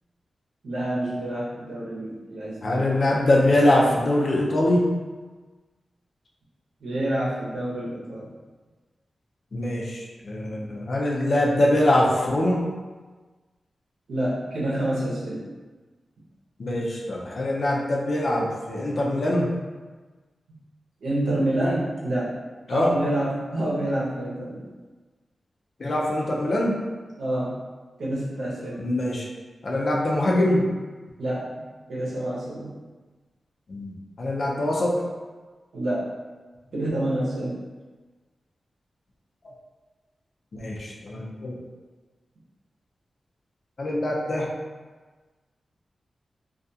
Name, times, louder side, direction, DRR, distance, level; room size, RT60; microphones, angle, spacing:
voice 1, 0.6-2.9 6.8-8.3 14.1-15.4 21.0-22.3 22.7-24.7 27.2-27.5 28.0-28.8 31.2-31.5 31.9-32.7 35.7-36.1 36.7-37.6, right 1 dB, 90° right, -7 dB, 0.7 m, -27 dB
voice 2, 2.6-4.8 9.5-12.6 16.6-19.5 22.7-22.9 25.8-26.8 28.8-29.3 29.6-30.7 33.7-35.0 40.5-41.6 43.8-44.5, left 1 dB, 50° left, -2 dB, 0.4 m, -23 dB
2.4 x 2.2 x 2.6 m, 1.3 s
wide cardioid pair, 125°, 0 cm